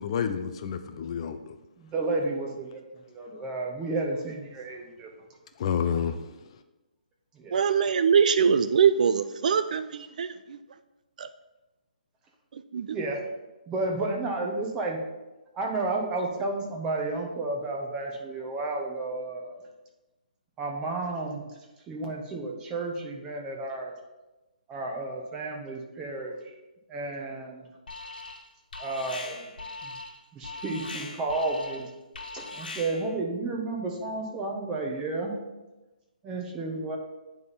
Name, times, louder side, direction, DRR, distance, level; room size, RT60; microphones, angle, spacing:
voice 1, 0.0-1.6 5.6-6.4, left 7 dB, 40° left, 0.4 m, -29 dB
voice 2, 1.8-2.8 3.1-5.1 7.3-7.6 12.9-13.2 13.7-15.0 15.5-19.6 20.6-21.5 21.9-23.9 24.7-26.4 26.9-27.7 28.8-29.4 29.8-29.9 30.3-31.9 32.3-35.3 36.2-37.0, right 2 dB, 15° right, 1.0 m, -32 dB
voice 3, 7.5-10.6 11.2-11.3 12.5-13.0, right 7 dB, 55° right, 0.3 m, -23 dB
Alarm, 27.9-28.5 28.7-33.2, left 3 dB, 80° left, 1.3 m, -40 dB
9.4 x 3.6 x 4.2 m
hypercardioid pair, 155°, 5 cm